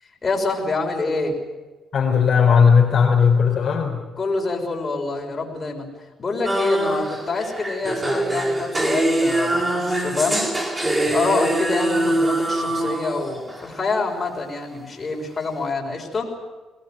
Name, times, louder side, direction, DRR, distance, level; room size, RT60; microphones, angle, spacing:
voice 1, 0.2-1.4 4.2-5.9 6.2-10.5 10.9-16.3, left 3 dB, 35° left, 1 dB, 5.8 m, -26 dB
voice 2, 1.9-4.0, left 6 dB, 50° left, -1 dB, 4.4 m, -16 dB
sound 1, 6.5-13.7, right 1 dB, 20° right, 4.6 m, -23 dB
23.5 x 19.0 x 9.4 m, 1.2 s
cardioid pair, 90°, 0 cm